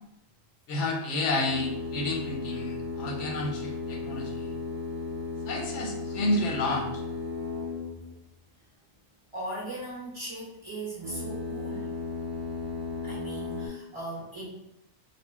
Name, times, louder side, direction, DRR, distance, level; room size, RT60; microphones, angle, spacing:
voice 1, 0.7-4.6 5.4-7.0, left 2 dB, 90° left, 1 dB, 0.9 m, -30 dB
sound 1, 1.4-8.2 10.9-13.7, left 3 dB, 50° right, 0.4 m, -35 dB
voice 2, 9.3-11.9 13.0-14.5, right 2 dB, 25° right, -9 dB, 1.2 m, -38 dB
3.6 x 2.0 x 2.3 m, 0.81 s
omnidirectional pair, 1.2 m